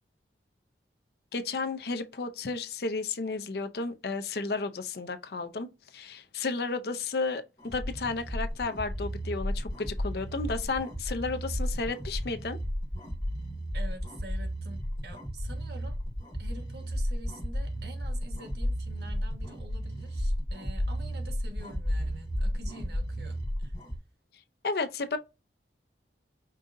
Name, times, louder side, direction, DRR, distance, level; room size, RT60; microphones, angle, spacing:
voice 1, 1.3-5.7 5.9-12.6 24.6-25.2, left 3 dB, 60° left, 0.6 m, -33 dB
sound 1, 7.6-24.0, equal, 25° left, 2.2 m, -33 dB
voice 2, 13.7-16.0 16.4-23.7, right 2 dB, 60° right, 1.2 m, -47 dB
5.3 x 3.7 x 2.6 m
head